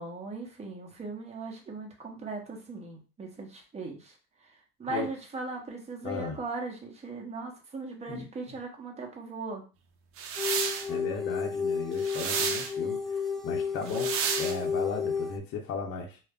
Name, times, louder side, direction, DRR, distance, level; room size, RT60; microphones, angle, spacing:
voice 1, 0.0-4.1 4.8-9.6, right 3 dB, 20° right, 1 dB, 0.8 m, -38 dB
voice 2, 6.0-6.4 8.1-8.6 10.9-16.2, left 4 dB, 50° left, 1 dB, 0.7 m, -36 dB
sound 1, 10.2-10.9 12.0-12.7 13.9-14.6, right 6 dB, 50° right, 0.5 m, -31 dB
sound 2, 10.4-15.4, left 6 dB, ahead, 0.3 m, -32 dB
2.3 x 2.0 x 3.5 m, 0.32 s
supercardioid pair, 100°, 29 cm